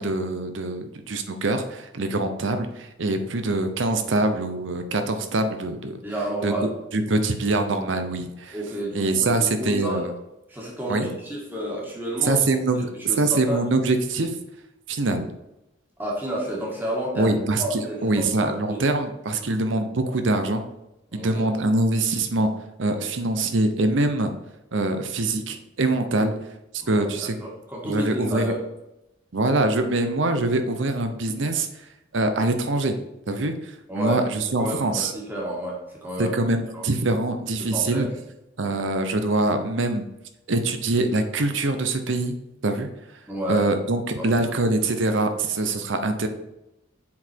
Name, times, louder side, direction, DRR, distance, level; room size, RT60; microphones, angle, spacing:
voice 1, 0.0-6.0 6.4-8.6 8.9-10.1 10.9-11.1 12.2-12.9 13.2-14.3 14.9-15.3 17.2-20.6 21.1-24.3 24.7-26.4 26.9-27.4 27.8-28.5 29.3-31.7 32.1-33.0 33.3-35.1 36.2-38.1 38.6-40.1 40.5-42.3 42.6-42.9 43.5-46.3, right 2 dB, 70° right, 7 dB, 0.8 m, -24 dB
voice 2, 6.0-6.7 8.5-10.1 10.5-12.4 12.9-13.6 16.0-17.3 17.6-18.8 21.1-21.4 26.8-28.6 33.9-34.2 34.6-36.3 36.7-36.8 37.6-38.1 43.3-43.7 44.2-44.4, right 1 dB, 10° right, -4 dB, 1.7 m, -31 dB
7.4 x 4.2 x 4.4 m, 0.91 s
head